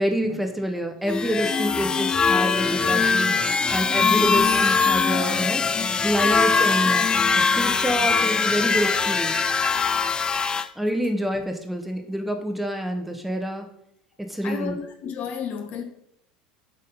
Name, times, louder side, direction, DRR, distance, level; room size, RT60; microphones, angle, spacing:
voice 1, 0.0-5.6 6.0-7.1 7.3-9.3 10.8-13.7 14.2-14.7, equal, 5° right, 1.1 m, -27 dB
sound 1, 1.1-10.7, left 5 dB, 20° left, 0.4 m, -22 dB
voice 2, 14.4-15.8, left 7 dB, 45° left, 1.0 m, -32 dB
7.3 x 4.1 x 5.4 m
figure-of-eight pair, 75°, 4 cm